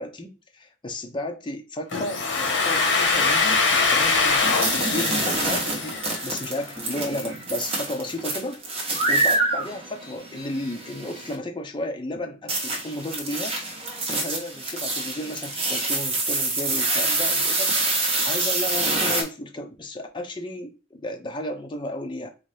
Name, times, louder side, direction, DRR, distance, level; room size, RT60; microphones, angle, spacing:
voice 1, 0.0-13.6 14.1-22.3, left 1 dB, 25° left, 0.7 m, -33 dB
Domestic sounds home sounds, 1.9-6.7, left 4 dB, 65° left, 1.3 m, -23 dB
sound 1, 4.4-11.3 12.5-19.2, right 2 dB, 30° right, 1.1 m, -26 dB
4.0 x 2.7 x 3.3 m
head